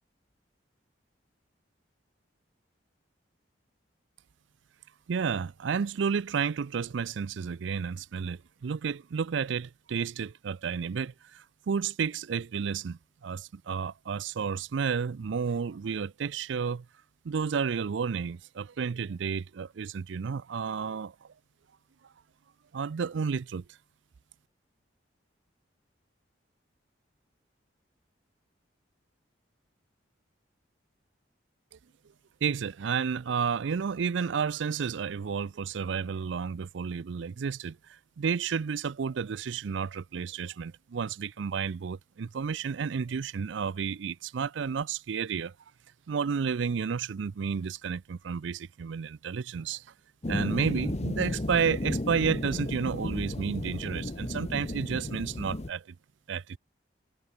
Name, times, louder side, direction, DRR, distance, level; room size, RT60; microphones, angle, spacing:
voice 1, 5.1-16.8 17.2-21.1 22.7-23.6 32.4-37.8 38.2-45.5 46.1-49.8 50.3-55.8 56.3-56.6, right 6 dB, 70° right, 0.4 m, -31 dB
sound 1, 50.2-55.7, left 1 dB, 35° left, 0.9 m, -34 dB
head